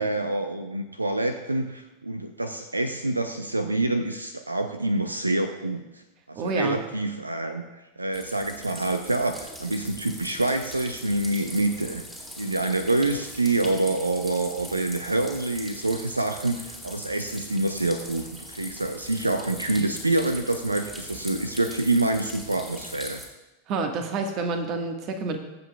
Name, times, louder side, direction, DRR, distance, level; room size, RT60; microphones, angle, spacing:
voice 1, 0.0-6.0 6.3-7.6 8.0-12.0 12.4-23.2, right 2 dB, 80° right, 8 dB, 0.6 m, -26 dB
voice 2, 6.3-6.8 23.7-25.4, right 4 dB, 40° right, 5 dB, 1.4 m, -28 dB
sound 1, 8.1-23.3, equal, 10° right, 2.2 m, -41 dB
23.0 x 7.7 x 2.3 m, 1.1 s
figure-of-eight pair, 90°, 0 cm